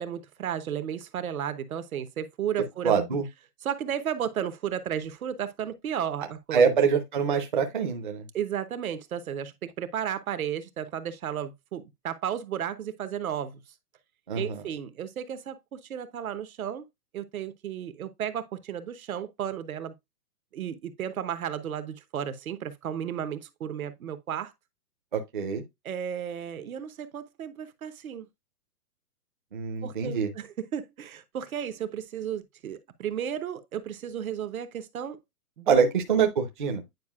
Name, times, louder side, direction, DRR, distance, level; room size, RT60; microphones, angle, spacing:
voice 1, 0.0-2.9 3.6-6.8 8.3-13.6 14.3-16.9 17.1-19.9 20.5-24.5 25.8-28.3 29.8-35.2 35.6-35.9, right 9 dB, 65° right, 1.0 m, -33 dB
voice 2, 2.8-3.2 6.5-8.2 14.3-14.6 25.1-25.6 29.5-30.3 35.7-36.8, right 6 dB, 35° right, 0.6 m, -25 dB
9.3 x 4.9 x 2.3 m
hypercardioid pair, 180°, 46 cm